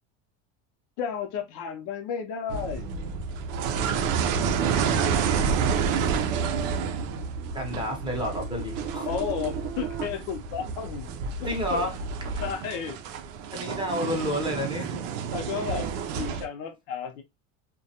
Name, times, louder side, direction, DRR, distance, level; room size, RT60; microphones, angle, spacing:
voice 1, 1.0-2.9 4.0-4.1 9.1-11.1 11.4-11.8 12.4-13.0 15.3-17.2, left 7 dB, 65° left, 0.6 m, -33 dB
sound 1, 2.5-16.4, right 6 dB, 85° right, 0.5 m, -29 dB
sound 2, 5.4-10.1, right 9 dB, 45° right, 0.7 m, -39 dB
voice 2, 7.5-9.1 11.4-12.0 12.3-12.4 13.5-14.9, equal, 15° right, 0.6 m, -30 dB
2.2 x 2.2 x 2.7 m
supercardioid pair, 130°, 38 cm